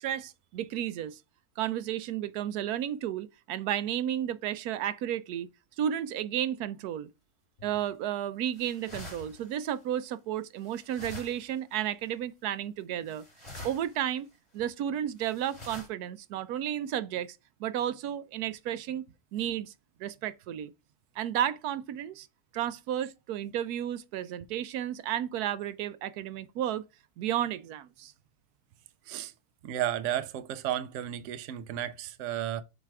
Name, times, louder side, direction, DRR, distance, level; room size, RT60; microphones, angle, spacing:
voice 1, 0.0-1.2 1.6-5.5 5.8-7.1 7.6-13.2 13.6-14.3 14.5-19.0 19.3-19.7 20.0-20.7 21.2-22.3 22.5-26.8 27.2-28.1, right 10 dB, 85° right, 1.1 m, -32 dB
sound 1, 7.6-7.9 8.5-10.0 10.6-11.7 12.0-12.1 13.1-14.0 14.3-14.4 15.2-15.9, left 2 dB, 25° left, 3.1 m, -46 dB
voice 2, 29.6-32.6, right 11 dB, 65° right, 0.9 m, -33 dB
7.4 x 3.3 x 4.6 m
omnidirectional pair, 1.6 m